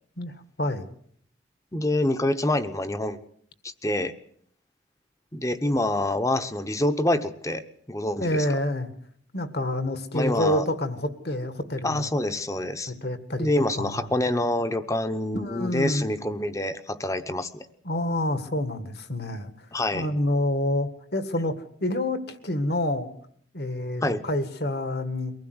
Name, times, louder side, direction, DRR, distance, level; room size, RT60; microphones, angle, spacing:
voice 1, 0.2-0.9 8.2-8.9 9.3-12.1 12.9-13.5 13.8-14.1 15.3-16.1 17.8-19.5 19.9-23.1 23.5-25.3, left 1 dB, 55° left, 10 dB, 1.8 m, -28 dB
voice 2, 1.7-3.2 3.6-4.1 5.3-7.6 7.9-8.4 10.1-10.6 11.8-12.9 13.4-17.7 19.7-20.1 24.0-24.2, left 1 dB, 15° left, 10 dB, 1.0 m, -26 dB
23.5 x 16.0 x 8.0 m, 0.64 s
head